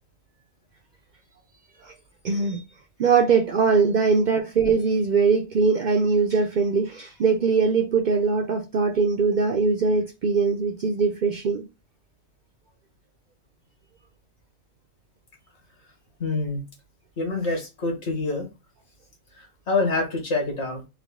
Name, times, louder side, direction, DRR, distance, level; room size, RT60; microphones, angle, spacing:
voice 1, 2.2-2.6 3.0-11.6, right 5 dB, 80° right, 0.4 m, -21 dB
voice 2, 16.2-16.6 17.2-18.5 19.4-20.9, left 3 dB, 60° left, 1.5 m, -26 dB
3.5 x 2.2 x 3.5 m
omnidirectional pair, 1.4 m